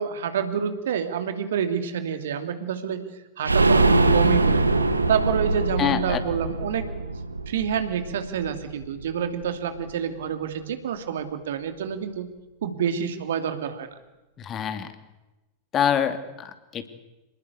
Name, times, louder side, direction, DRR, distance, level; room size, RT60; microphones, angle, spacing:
voice 1, 0.0-3.1 3.4-4.6 5.1-6.9 7.5-12.3 12.6-14.0, right 7 dB, 60° right, 8 dB, 2.8 m, -28 dB
sound 1, 3.4-9.1 9.4-9.5 9.8-9.9, right 3 dB, 80° right, 1.8 m, -23 dB
voice 2, 5.8-6.2 14.4-14.9 15.7-16.9, left 9 dB, 30° left, 9 dB, 2.8 m, -25 dB
28.0 x 19.5 x 8.3 m, 1.0 s
figure-of-eight pair, 90°, 0 cm